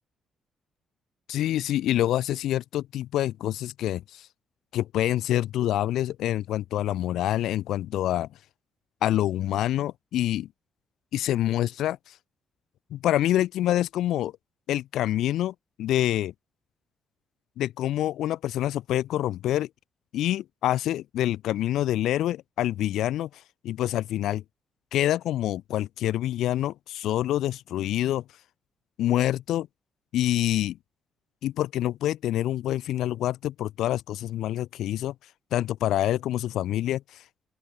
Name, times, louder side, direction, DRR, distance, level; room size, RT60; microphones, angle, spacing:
voice 1, 1.3-4.3 4.7-8.3 9.0-10.5 11.1-12.1 12.9-14.3 14.7-16.3 17.6-19.7 20.1-23.3 23.6-24.4 24.9-28.2 29.0-29.7 30.1-30.8 31.4-35.1 35.5-37.2, left 13 dB, 80° left, 3.1 m, -26 dB
open air
cardioid pair, 90°, 0 cm